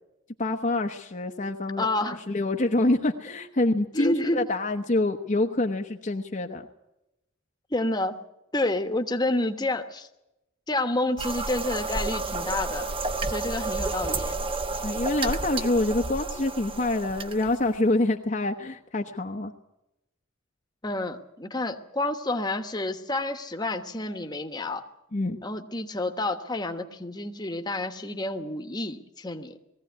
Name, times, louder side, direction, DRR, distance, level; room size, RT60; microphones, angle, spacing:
voice 1, 0.4-6.7 14.8-19.5 25.1-25.4, left 2 dB, 35° left, 3 dB, 0.9 m, -26 dB
voice 2, 1.8-2.2 3.9-4.5 7.7-8.2 8.5-10.1 10.7-12.9 13.2-14.3 20.8-24.8 25.4-29.6, left 2 dB, 20° left, 6 dB, 1.2 m, -29 dB
sound 1, 11.2-17.8, right 3 dB, 25° right, 1.0 m, -31 dB
20.0 x 15.5 x 9.3 m, 0.90 s
head